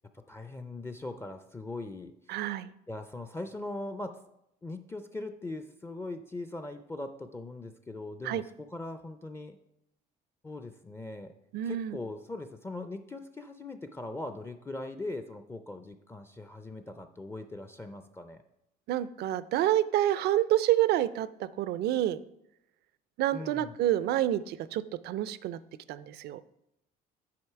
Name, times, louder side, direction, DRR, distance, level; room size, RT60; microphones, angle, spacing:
voice 1, 0.3-2.1 2.9-4.2 4.6-9.6 10.4-11.3 11.6-18.4 23.3-23.8, left 2 dB, 15° left, 8 dB, 0.4 m, -40 dB
voice 2, 2.3-2.7 8.2-8.4 11.5-12.0 18.9-22.2 23.2-25.6 25.9-26.4, right 13 dB, 75° right, 16 dB, 0.5 m, -28 dB
8.6 x 5.3 x 4.6 m, 0.82 s
cardioid pair, 110°, 17 cm